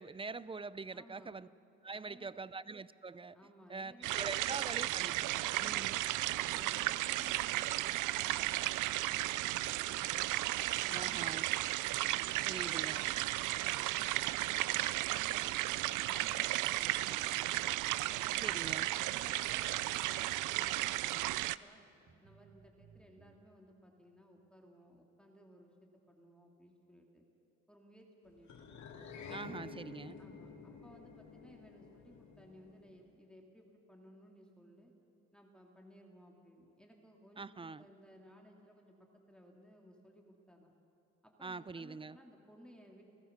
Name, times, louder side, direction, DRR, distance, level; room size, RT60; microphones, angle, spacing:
voice 1, 0.0-1.5 1.8-3.4 3.7-6.0 10.9-11.5 12.5-13.1 18.4-18.9 29.3-30.2 37.4-37.8 41.4-42.2, right 4 dB, 20° right, 18 dB, 0.5 m, -44 dB
voice 2, 0.9-1.3 1.9-2.5 3.3-4.7 5.5-6.0 6.5-10.3 10.7-11.4 12.0-17.7 18.1-18.4 18.7-19.7 20.0-21.8 22.2-27.2 27.7-28.7 29.3-29.8 30.2-34.9 35.3-40.7 41.2-43.0, equal, 5° left, 0 dB, 2.7 m, -60 dB
sound 1, 4.0-21.6, right 16 dB, 85° right, 0.5 m, -34 dB
sound 2, 18.8-20.8 21.5-21.6 22.1-23.4, right 5 dB, 45° right, 1.7 m, -62 dB
sound 3, 28.5-33.0, left 5 dB, 70° left, 2.5 m, -50 dB
29.0 x 16.5 x 6.7 m, 2.8 s
cardioid pair, 90°, 30 cm